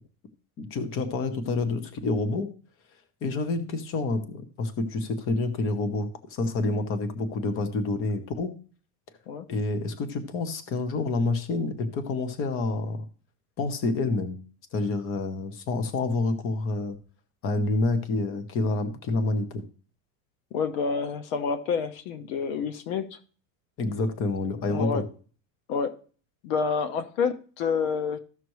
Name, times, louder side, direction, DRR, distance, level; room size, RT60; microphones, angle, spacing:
voice 1, 0.6-2.5 3.2-8.5 9.5-13.1 13.6-14.4 14.7-17.0 17.4-19.6 23.8-25.0, left 3 dB, 30° left, 10 dB, 1.0 m, -28 dB
voice 2, 20.5-23.2 24.7-25.0 25.7-26.0 26.4-28.2, left 5 dB, 70° left, 12 dB, 1.1 m, -28 dB
14.5 x 6.0 x 3.1 m, 0.41 s
cardioid pair, 170°, 43 cm